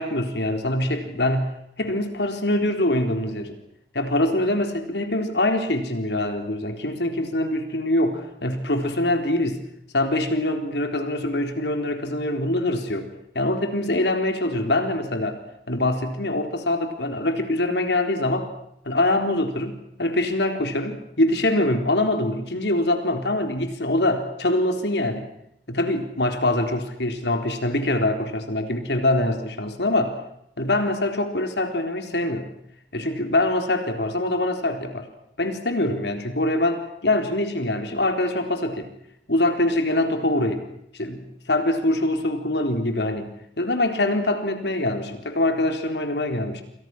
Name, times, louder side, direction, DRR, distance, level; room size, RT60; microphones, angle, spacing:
voice 1, 0.0-3.6 3.9-9.7 9.9-13.1 13.3-15.4 15.7-18.5 18.8-25.3 25.7-30.2 30.6-32.5 32.9-35.1 35.4-38.9 39.3-40.6 40.9-43.3 43.6-46.6, left 1 dB, 75° left, 6 dB, 4.0 m, -24 dB
29.0 x 28.0 x 6.2 m, 0.75 s
head